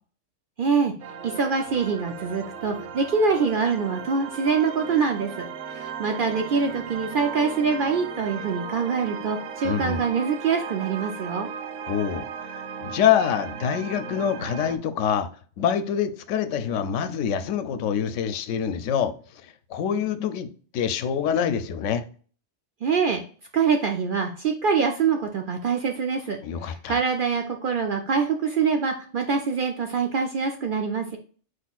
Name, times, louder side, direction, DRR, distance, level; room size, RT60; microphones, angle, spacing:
voice 1, 0.6-0.9 1.2-11.5 22.8-23.2 23.5-26.4 26.6-31.2, right 5 dB, 55° right, 0.6 m, -24 dB
sound 1, 1.0-14.8, right 6 dB, 80° right, 0.9 m, -36 dB
voice 2, 9.6-10.0 11.8-12.3 12.8-15.3 15.6-19.1 19.7-20.5 20.7-22.0 26.4-27.0, left 8 dB, 85° left, 0.9 m, -25 dB
4.9 x 4.2 x 2.3 m
omnidirectional pair, 1.2 m